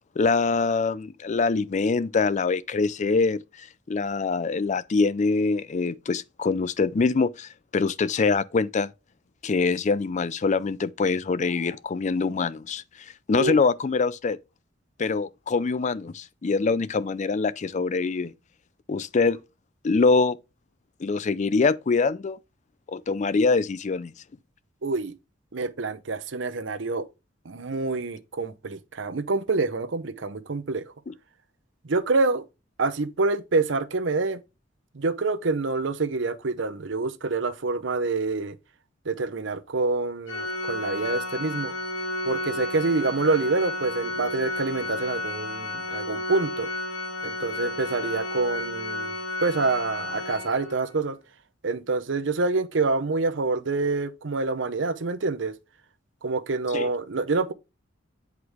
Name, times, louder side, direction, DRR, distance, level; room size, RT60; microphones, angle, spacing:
voice 1, 0.2-8.9 9.4-12.8 13.3-14.4 15.0-18.3 18.9-19.4 19.8-20.4 21.0-22.4 22.9-24.1 31.1-31.2 56.7-56.9, left 4 dB, 40° left, 0.4 m, -24 dB
voice 2, 24.8-25.1 25.5-27.1 27.5-30.9 31.8-32.4 32.8-34.4 34.9-38.6 39.1-41.7 42.3-46.7 47.2-49.1 49.4-51.2 51.6-55.5 56.2-57.5, right 3 dB, 70° right, 0.8 m, -26 dB
Organ, 40.3-51.0, left 2 dB, 85° left, 1.3 m, -32 dB
8.1 x 4.8 x 3.5 m
head